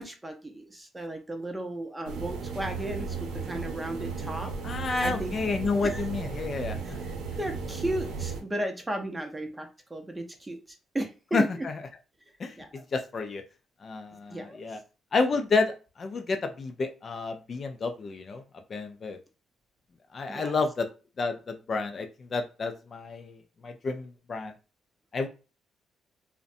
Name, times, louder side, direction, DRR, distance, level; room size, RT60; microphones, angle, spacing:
voice 1, 0.0-4.5 5.0-5.3 5.8-6.0 7.0-10.6 10.9-11.7 12.6-12.7 14.3-14.6 20.3-20.5, right 1 dB, 15° right, 4 dB, 0.6 m, -35 dB
sound 1, 2.0-8.4, right 5 dB, 85° right, 0.6 m, -35 dB
voice 2, 4.6-7.0 11.3-11.7 12.4-13.4 13.8-14.8 15.1-18.4 18.7-19.2 20.1-20.9 21.2-24.5 25.1-25.3, left 3 dB, 45° left, 6 dB, 0.4 m, -30 dB
2.5 x 2.1 x 2.5 m, 0.33 s
cardioid pair, 90°, 0 cm